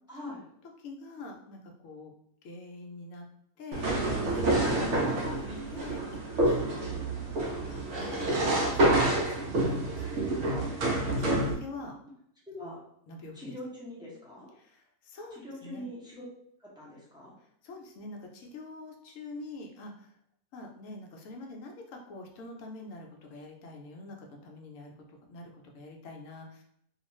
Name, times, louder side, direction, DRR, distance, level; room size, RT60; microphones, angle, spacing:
voice 1, 0.1-0.4 5.2-5.5 12.5-12.8 13.3-14.5 15.3-16.2 16.6-17.3, left 1 dB, 5° right, -7 dB, 0.4 m, -43 dB
voice 2, 0.8-2.1 2.4-3.2 3.6-3.9 4.4-6.0 6.4-7.0 7.7-10.7 11.0-11.9 12.6-12.8 13.1-13.5 14.6-15.9 17.6-20.1 20.5-26.6, left 2 dB, 70° left, 1 dB, 0.9 m, -45 dB
sound 1, 3.7-11.5, right 1 dB, 65° right, 0.8 m, -28 dB
2.4 x 2.3 x 3.0 m, 0.72 s
omnidirectional pair, 1.5 m